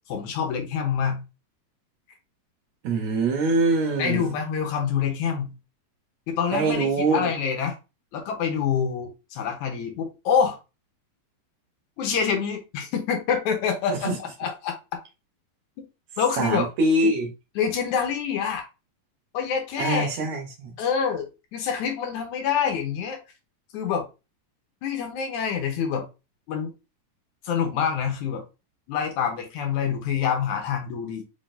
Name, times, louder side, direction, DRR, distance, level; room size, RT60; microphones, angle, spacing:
voice 1, 0.1-1.2 4.0-5.5 6.3-7.7 8.1-10.6 12.0-14.7 16.2-16.6 17.6-18.6 19.3-20.1 20.8-23.2 23.7-24.1 24.8-26.1 26.5-26.7 27.5-28.4 28.9-31.2, left 7 dB, 70° left, 2.1 m, -26 dB
voice 2, 2.8-4.3 6.5-7.3 14.0-14.2 16.4-17.3 19.8-20.7, right 2 dB, 70° right, 1.8 m, -23 dB
5.1 x 3.7 x 2.5 m
omnidirectional pair, 4.0 m